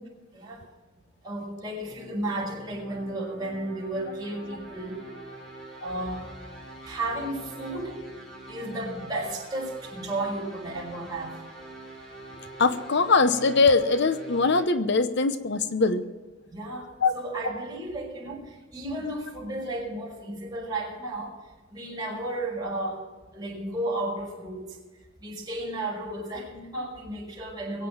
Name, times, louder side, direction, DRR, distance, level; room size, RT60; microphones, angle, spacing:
voice 1, 0.3-0.6 1.2-5.0 5.8-6.3 6.8-8.1 8.5-11.4 16.5-21.3 21.7-23.0 23.3-24.8 25.2-27.9, right 1 dB, 20° right, -5 dB, 5.5 m, -33 dB
sound 1, 1.8-14.6, right 2 dB, 5° left, 3.7 m, -44 dB
voice 2, 12.6-16.0 17.0-17.1, left 4 dB, 60° left, 11 dB, 0.9 m, -22 dB
22.5 x 8.6 x 5.8 m, 1.2 s
head